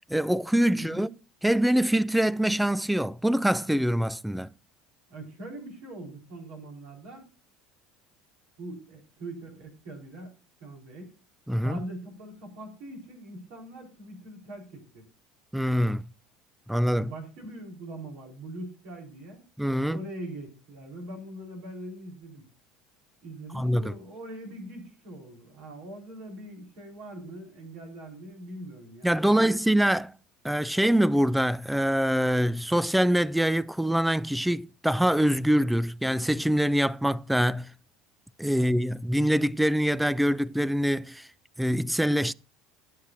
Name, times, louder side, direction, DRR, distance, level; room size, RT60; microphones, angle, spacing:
voice 1, 0.1-1.1 1.4-4.5 11.5-11.8 15.5-16.1 16.7-17.1 19.6-20.0 23.5-24.0 29.0-30.1 30.4-37.7 38.4-41.3 41.6-42.3, equal, 5° right, 0.4 m, -24 dB
voice 2, 0.7-1.1 5.1-7.3 8.6-10.3 10.6-11.1 11.6-15.1 17.0-19.4 19.9-22.4 23.2-29.5 38.6-38.7, right 1 dB, 65° right, 4.5 m, -42 dB
16.5 x 7.9 x 2.8 m
hypercardioid pair, 70°, 0 cm